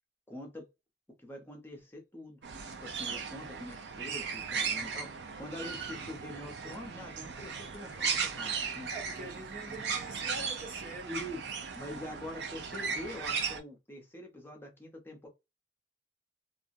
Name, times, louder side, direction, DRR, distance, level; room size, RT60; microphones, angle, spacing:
voice 1, 0.3-0.7 1.2-2.4 2.8-5.1 5.4-8.9 11.1-11.4 11.7-15.3, left 1 dB, 10° left, 0.7 m, -44 dB
sound 1, 2.4-13.6, right 5 dB, 65° right, 0.5 m, -37 dB
voice 2, 8.9-11.2, right 2 dB, 45° right, 0.9 m, -44 dB
2.4 x 2.0 x 2.6 m
head